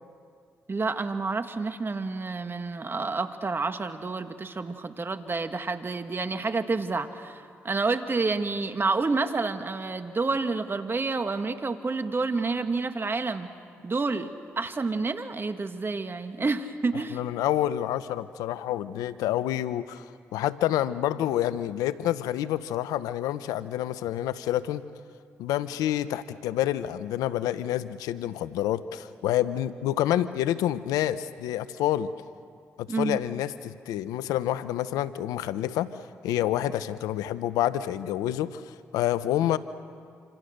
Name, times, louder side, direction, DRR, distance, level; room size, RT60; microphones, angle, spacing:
voice 1, 0.7-13.5 13.8-14.3 14.6-17.2 32.9-33.2, right 3 dB, 40° right, 8 dB, 1.8 m, -29 dB
voice 2, 16.9-24.8 25.4-32.1 32.8-35.9 36.2-39.6, left 12 dB, 85° left, 14 dB, 0.7 m, -28 dB
27.0 x 26.5 x 6.6 m, 2.3 s
supercardioid pair, 50°, 6 cm